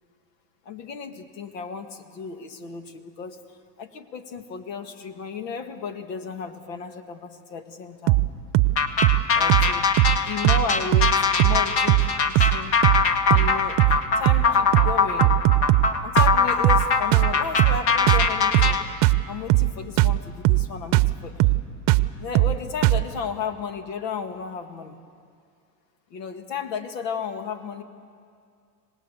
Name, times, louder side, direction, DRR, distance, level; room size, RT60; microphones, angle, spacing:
voice 1, 0.7-3.4 3.8-8.2 9.3-9.9 10.3-12.8 13.2-15.4 16.0-18.8 19.3-21.5 22.2-25.0 26.1-27.8, left 6 dB, 85° left, 9 dB, 2.0 m, -34 dB
sound 1, 8.1-8.3 8.5-8.8 9.0-9.2 9.5-9.7 10.0-10.2 10.4-10.7 10.9-11.1 11.4-11.6 11.9-12.1 12.4-12.6 12.8-13.0 13.3-13.5 13.8-14.0 14.3-14.5 14.7-14.9 15.2-16.4 16.6-16.9 17.1-17.3 17.6-17.8 18.1-18.3 18.5-18.8 19.0-19.2 19.5-19.7 20.0-20.2 20.4-20.7 20.9-21.1 21.4-21.6 21.9-22.1 22.3-22.6 22.8-23.0, right 19 dB, 45° right, 0.7 m, -19 dB
sound 2, 8.8-18.8, left 5 dB, 55° left, 2.0 m, -22 dB
26.0 x 19.0 x 8.4 m, 2.3 s
supercardioid pair, 115°, 47 cm